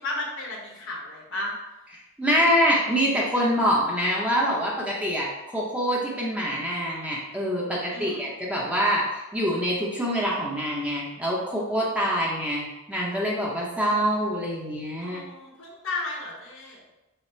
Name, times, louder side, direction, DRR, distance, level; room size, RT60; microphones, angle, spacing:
voice 1, 0.0-1.5 7.9-8.3 15.0-16.8, left 2 dB, 60° left, -1 dB, 1.1 m, -34 dB
voice 2, 2.2-15.2, equal, 5° right, -4 dB, 0.7 m, -25 dB
5.7 x 2.1 x 4.3 m, 0.98 s
head